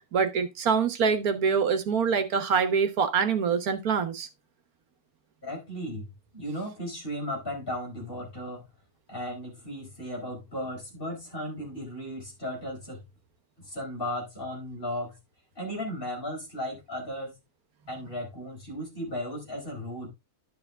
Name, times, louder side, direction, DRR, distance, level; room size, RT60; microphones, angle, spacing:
voice 1, 0.1-4.3, right 6 dB, 75° right, 1.6 m, -25 dB
voice 2, 5.4-6.1 6.3-8.6 9.1-13.0 13.6-15.1 15.6-17.4 17.9-20.1, equal, 35° left, 4.7 m, -35 dB
10.5 x 6.1 x 3.5 m
omnidirectional pair, 1.6 m